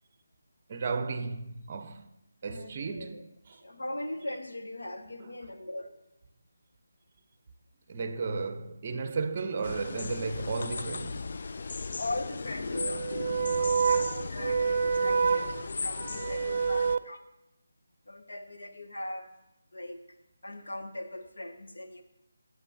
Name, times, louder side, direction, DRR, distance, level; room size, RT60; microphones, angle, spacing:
voice 1, 0.7-2.1 2.4-3.6 7.9-11.4 12.7-17.0, right 5 dB, 30° right, 0.7 m, -30 dB
voice 2, 2.5-3.2 3.5-6.0 12.0-17.2 18.1-19.3 19.7-20.0 20.4-22.0, left 1 dB, 80° left, 1.2 m, -40 dB
sound 1, 9.6-17.0, left 4 dB, 50° left, 0.3 m, -37 dB
15.0 x 7.9 x 2.7 m
figure-of-eight pair, 170°, 0 cm